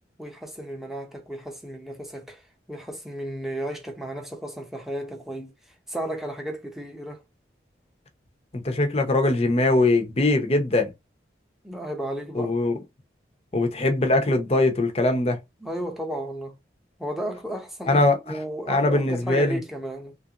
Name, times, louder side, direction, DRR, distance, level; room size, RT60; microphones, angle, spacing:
voice 1, 0.2-5.5 5.9-7.2 11.6-12.5 15.6-16.6 17.0-20.1, right 1 dB, ahead, 0.7 m, -34 dB
voice 2, 8.6-10.9 12.3-12.7 13.5-15.4 17.9-18.2 18.7-19.6, left 2 dB, 35° left, 0.7 m, -21 dB
3.3 x 2.5 x 2.8 m
head